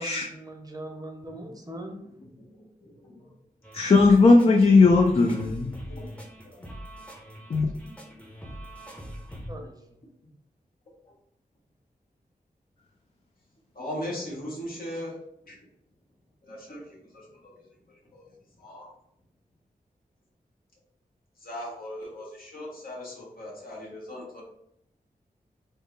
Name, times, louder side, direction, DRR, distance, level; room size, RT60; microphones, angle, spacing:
voice 1, 0.0-2.0 9.5-10.0, right 1 dB, 25° right, 3 dB, 0.7 m, -40 dB
voice 2, 2.4-3.2 5.9-6.1 6.5-6.7 13.7-15.1 15.4-15.6 16.4-17.7 18.1-18.3 18.6-18.9 21.4-24.4, left 1 dB, 70° left, -5 dB, 1.4 m, -39 dB
sound 1, 3.6-9.5, equal, 10° left, 0.8 m, -42 dB
voice 3, 3.7-5.7 7.5-7.6, left 3 dB, 40° left, 1 dB, 0.4 m, -18 dB
3.6 x 2.1 x 3.8 m, 0.74 s
wide cardioid pair, 85°, 16 cm